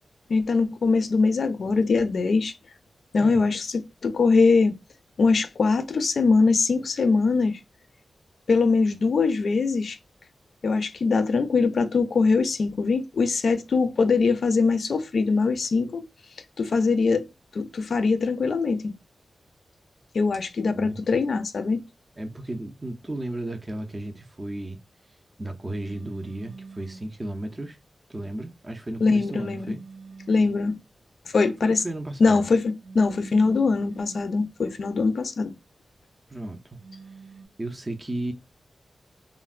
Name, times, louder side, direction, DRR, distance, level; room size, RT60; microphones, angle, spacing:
voice 1, 0.3-2.5 3.1-4.7 5.2-7.6 8.5-10.0 10.6-16.1 16.6-17.3 17.5-18.9 20.1-21.8 29.0-29.7 30.3-30.8 31.3-31.8 32.2-35.5, left 4 dB, 60° left, 0.4 m, -22 dB
voice 2, 20.7-21.0 22.2-24.8 25.4-27.8 28.1-29.8 31.6-32.5 36.3-36.8 37.6-38.3, right 1 dB, 20° right, 0.4 m, -34 dB
sound 1, 25.8-27.1 29.3-30.7 32.8-34.3 36.8-37.5, right 4 dB, 75° right, 0.7 m, -44 dB
3.2 x 2.1 x 2.3 m
wide cardioid pair, 175°, 0 cm